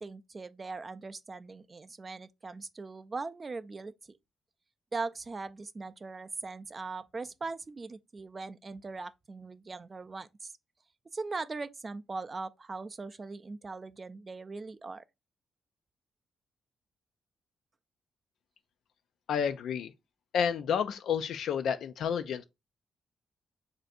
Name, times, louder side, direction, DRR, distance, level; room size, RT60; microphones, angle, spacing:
voice 1, 0.0-4.2 4.9-10.5 11.1-15.0, right 3 dB, 30° right, 0.3 m, -40 dB
voice 2, 19.3-19.9 20.3-22.4, left 7 dB, 80° left, 0.3 m, -30 dB
3.3 x 2.6 x 3.9 m
cardioid pair, 115°, 0 cm